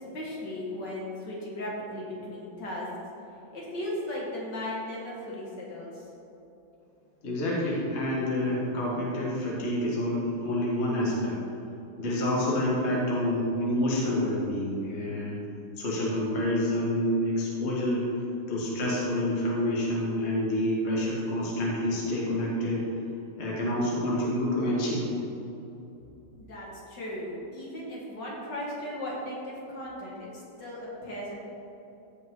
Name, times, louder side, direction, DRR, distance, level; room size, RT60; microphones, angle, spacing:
voice 1, 0.1-2.9 3.5-6.0 26.3-30.2 30.6-31.4, left 1 dB, 55° left, -5 dB, 2.3 m, -36 dB
voice 2, 7.2-11.4 12.0-15.4 15.8-18.1 18.5-22.8 23.4-25.2, left 1 dB, 35° left, -5 dB, 1.8 m, -28 dB
15.0 x 5.6 x 3.8 m, 3.0 s
omnidirectional pair, 2.4 m